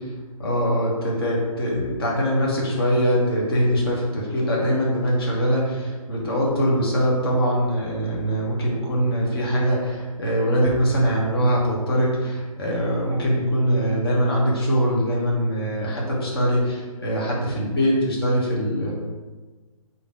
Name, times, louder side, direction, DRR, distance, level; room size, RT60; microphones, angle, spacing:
voice 1, 0.4-18.9, equal, 40° left, -3 dB, 0.8 m, -22 dB
3.3 x 2.6 x 2.5 m, 1.3 s
figure-of-eight pair, 140°, 18 cm